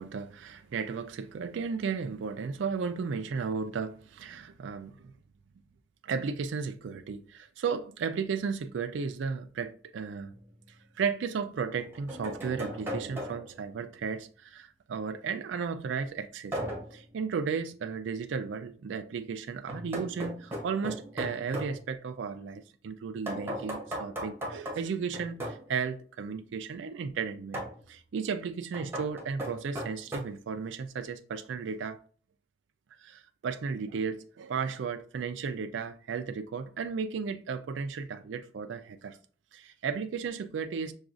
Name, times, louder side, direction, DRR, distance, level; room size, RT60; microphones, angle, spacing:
voice 1, 0.0-5.1 6.0-10.3 11.0-16.6 16.9-32.0 33.0-39.2 39.5-40.9, right 5 dB, 85° right, 0.4 m, -34 dB
sound 1, 10.3-10.4 11.6-13.6 16.5-17.0 19.7-21.8 23.3-25.7 27.5-27.8 28.7-30.2, equal, 10° right, 0.8 m, -37 dB
5.9 x 2.3 x 2.5 m
head